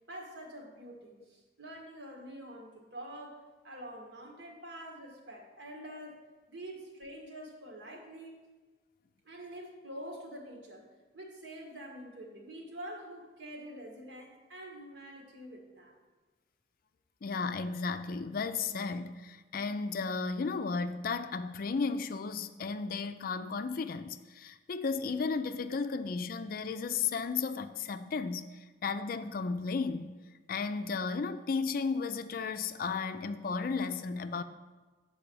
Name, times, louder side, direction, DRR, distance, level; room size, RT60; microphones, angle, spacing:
voice 1, 0.1-8.5 9.2-15.9, right 1 dB, 75° right, 1.6 m, -46 dB
voice 2, 17.2-30.1 30.5-34.4, left 4 dB, 55° left, 0.4 m, -34 dB
7.1 x 4.7 x 6.9 m
head